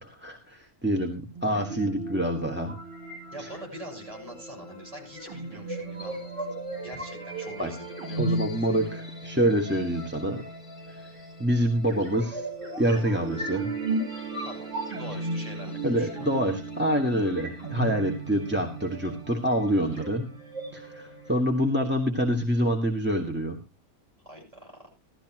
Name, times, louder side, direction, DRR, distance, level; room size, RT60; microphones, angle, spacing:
voice 1, 0.0-2.7 3.4-3.5 7.6-7.7 8.2-10.4 10.9-11.0 11.4-12.5 12.8-13.7 15.8-20.3 20.7-23.6, equal, 10° right, 2 dB, 1.4 m, -26 dB
sound 1, 1.3-21.3, right 2 dB, 55° right, 5.9 m, -36 dB
voice 2, 3.3-6.3 6.8-8.8 12.9-13.1 14.4-16.3 24.2-24.9, right 1 dB, 25° right, 1 dB, 6.5 m, -44 dB
16.0 x 13.0 x 2.9 m, 0.28 s
omnidirectional pair, 1.6 m